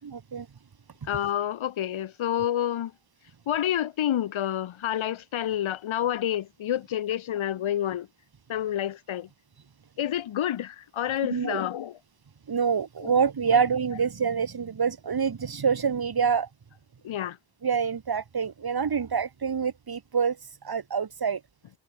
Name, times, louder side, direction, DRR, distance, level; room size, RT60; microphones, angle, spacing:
voice 1, 0.0-0.5 11.3-11.6 12.5-16.5 17.6-21.4, right 6 dB, 50° right, 6.5 m, -26 dB
voice 2, 1.1-2.9 3.5-8.1 8.5-9.3 10.0-11.9 17.0-17.4, left 11 dB, 75° left, 7.0 m, -28 dB
supercardioid pair, 55°, 48 cm